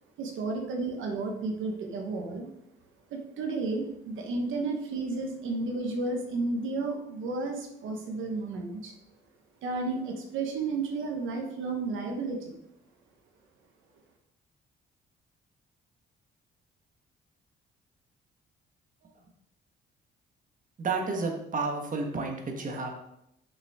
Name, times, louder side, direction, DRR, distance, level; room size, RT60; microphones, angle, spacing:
voice 1, 0.2-2.5 3.1-8.9 9.6-12.5, right 3 dB, 80° right, 2 dB, 1.2 m, -32 dB
voice 2, 20.8-22.9, right 4 dB, 40° right, 2 dB, 1.4 m, -31 dB
6.4 x 6.2 x 3.6 m, 0.78 s
cardioid pair, 90°, 20 cm